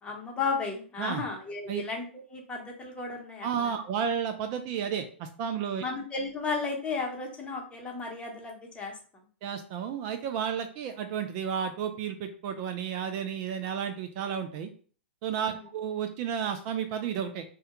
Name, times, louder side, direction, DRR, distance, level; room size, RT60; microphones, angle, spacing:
voice 1, 0.0-3.7 5.8-8.9, left 4 dB, 15° left, 0 dB, 0.8 m, -34 dB
voice 2, 3.4-5.8 9.4-14.7 15.2-17.6, right 8 dB, 40° right, 7 dB, 0.3 m, -32 dB
2.2 x 2.2 x 2.8 m, 0.42 s
hypercardioid pair, 110°, 7 cm